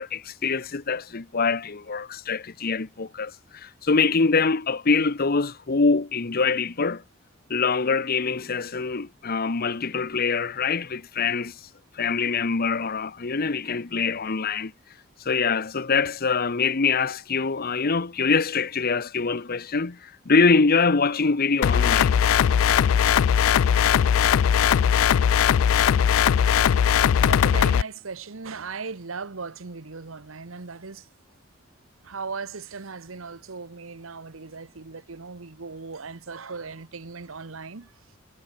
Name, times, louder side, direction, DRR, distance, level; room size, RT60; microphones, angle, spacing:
voice 1, 0.0-7.0 7.5-11.6 11.9-14.7 15.2-22.1, left 4 dB, 50° left, 0.9 m, -24 dB
sound 1, 21.6-27.8, left 8 dB, 80° left, 0.3 m, -19 dB
voice 2, 27.2-31.1 32.0-37.9, right 4 dB, 80° right, 1.1 m, -37 dB
head